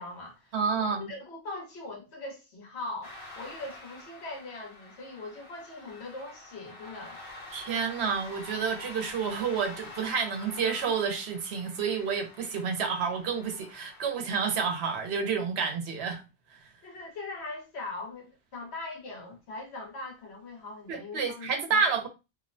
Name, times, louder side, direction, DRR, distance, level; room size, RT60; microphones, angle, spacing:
voice 1, 0.0-7.2 16.8-21.8, left 2 dB, 85° left, 1.2 m, -41 dB
voice 2, 0.5-1.1 7.5-16.2 20.9-22.1, right 5 dB, 85° right, 0.9 m, -29 dB
sound 1, 3.0-14.1, left 2 dB, 35° left, 0.7 m, -47 dB
2.8 x 2.0 x 2.5 m
omnidirectional pair, 1.1 m